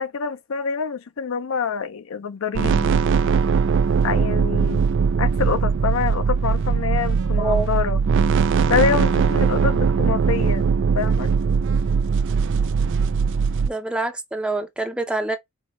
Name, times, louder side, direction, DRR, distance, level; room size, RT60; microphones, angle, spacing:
voice 1, 0.0-2.9 4.0-4.8 5.2-8.0 8.7-11.3, left 6 dB, 65° left, 0.5 m, -26 dB
sound 1, 2.5-13.7, right 5 dB, 55° right, 0.3 m, -20 dB
voice 2, 7.4-7.7 13.7-15.4, right 2 dB, 5° right, 0.6 m, -26 dB
4.5 x 2.7 x 3.1 m
head